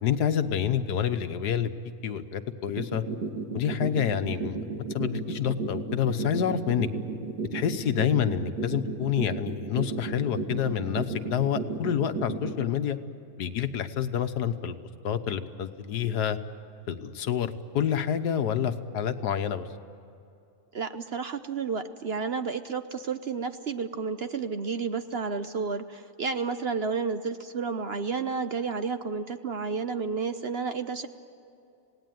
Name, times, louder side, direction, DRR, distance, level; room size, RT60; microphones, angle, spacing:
voice 1, 0.0-1.7 2.0-3.0 3.5-4.6 4.9-6.9 7.5-13.0 13.4-14.8 15.0-16.4 16.9-19.7, left 9 dB, 90° left, 10 dB, 1.6 m, -28 dB
sound 1, 2.7-12.7, right 4 dB, 90° right, 2.5 m, -32 dB
voice 2, 20.7-31.1, right 5 dB, 50° right, 9 dB, 0.9 m, -31 dB
27.0 x 18.5 x 9.3 m, 2.7 s
omnidirectional pair, 1.7 m